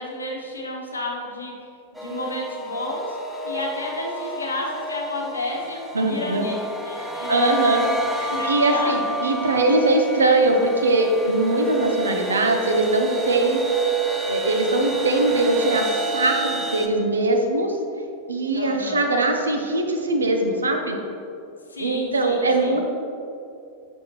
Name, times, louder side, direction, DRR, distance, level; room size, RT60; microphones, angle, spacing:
voice 1, 0.0-1.5 1.9-3.2 3.4-6.5 6.8-7.5 8.3-9.1 18.5-19.1 21.7-22.8, left 2 dB, 80° left, -1 dB, 0.9 m, -31 dB
sound 1, 2.0-16.9, right 3 dB, ahead, 0.6 m, -29 dB
voice 2, 5.9-6.5 7.0-13.6 14.2-17.8 18.3-21.0 21.8-22.8, right 2 dB, 75° right, 4 dB, 0.6 m, -21 dB
6.4 x 5.3 x 2.9 m, 2.6 s
figure-of-eight pair, 90°, 0 cm